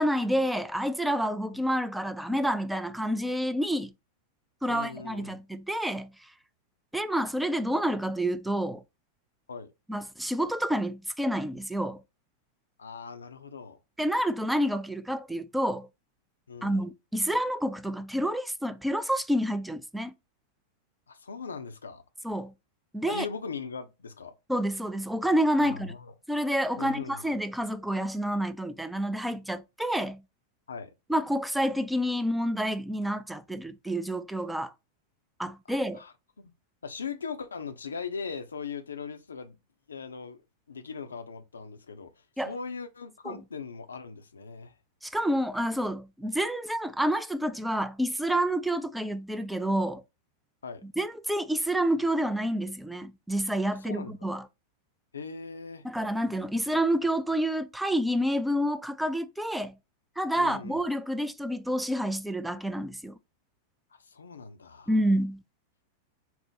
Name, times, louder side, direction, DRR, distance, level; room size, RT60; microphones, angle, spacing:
voice 1, 0.0-3.9 4.6-6.1 6.9-8.8 9.9-12.0 14.0-15.9 16.6-20.1 22.2-22.5 22.9-23.3 24.5-25.9 26.3-30.2 31.1-34.7 35.4-36.0 42.4-42.5 43.3-43.4 45.0-50.0 50.8-54.4 55.8-59.8 60.2-63.2 64.9-65.4, equal, 5° right, 0.3 m, -28 dB
voice 2, 4.7-5.4 9.5-9.7 12.8-13.8 16.5-16.9 21.1-22.0 23.1-24.3 25.6-26.1 26.8-27.3 30.7-30.9 35.7-36.1 36.8-39.6 39.9-40.4 40.7-44.7 50.6-50.8 53.8-54.2 55.1-55.8 60.4-60.8 63.9-65.0, left 5 dB, 70° left, 0.5 m, -39 dB
4.2 x 2.0 x 3.8 m
figure-of-eight pair, 90°, 0 cm